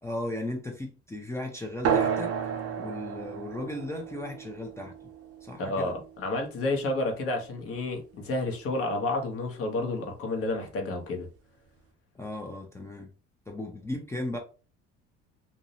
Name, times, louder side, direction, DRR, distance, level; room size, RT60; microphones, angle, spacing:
voice 1, 0.0-2.3 2.8-5.1 5.4-6.0 12.1-13.1 13.5-14.4, left 1 dB, 10° left, 0.4 m, -36 dB
sound 1, 1.8-6.9, right 8 dB, 55° right, 0.6 m, -32 dB
voice 2, 5.6-11.3, left 2 dB, 50° left, 0.9 m, -30 dB
2.5 x 2.0 x 2.7 m
supercardioid pair, 95°, 29 cm